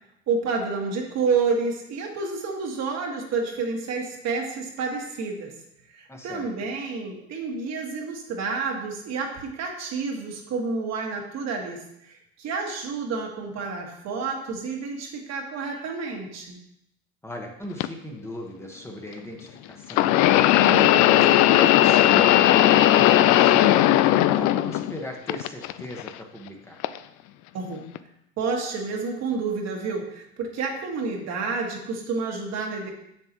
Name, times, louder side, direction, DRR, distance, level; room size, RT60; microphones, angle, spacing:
voice 1, 0.3-5.5 5.9-16.6 27.5-27.9 28.4-32.9, right 4 dB, 55° right, 1 dB, 1.8 m, -29 dB
voice 2, 6.1-6.4 17.2-20.1 20.6-22.3 22.8-26.8, equal, 10° left, 0 dB, 1.3 m, -37 dB
sound 1, 17.8-17.9 19.9-25.0 25.3-26.1 26.8-27.0 27.9-28.0, left 14 dB, 65° left, 0.5 m, -17 dB
7.4 x 6.9 x 3.0 m, 0.78 s
supercardioid pair, 95°, 32 cm